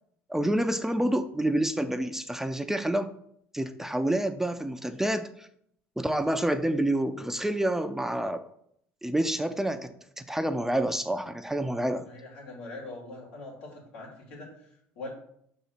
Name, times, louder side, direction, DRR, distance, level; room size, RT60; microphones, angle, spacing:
voice 1, 0.3-3.1 3.5-5.5 6.0-8.4 9.0-9.9 10.2-12.1, right 1 dB, 5° right, 9 dB, 0.5 m, -28 dB
voice 2, 12.0-15.1, left 2 dB, 85° left, -3 dB, 2.7 m, -43 dB
5.4 x 4.1 x 5.8 m, 0.70 s
supercardioid pair, 80°, 6 cm